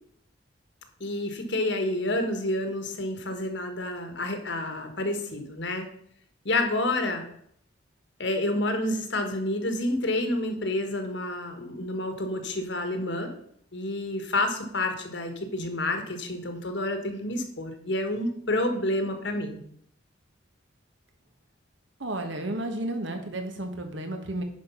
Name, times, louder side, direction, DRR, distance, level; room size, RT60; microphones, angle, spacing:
voice 1, 1.0-5.8 6.4-7.2 8.2-13.3 13.7-19.6, left 1 dB, 65° left, 6 dB, 1.5 m, -29 dB
voice 2, 22.0-24.4, right 1 dB, 70° right, 5 dB, 1.5 m, -32 dB
10.5 x 4.9 x 5.6 m, 0.66 s
head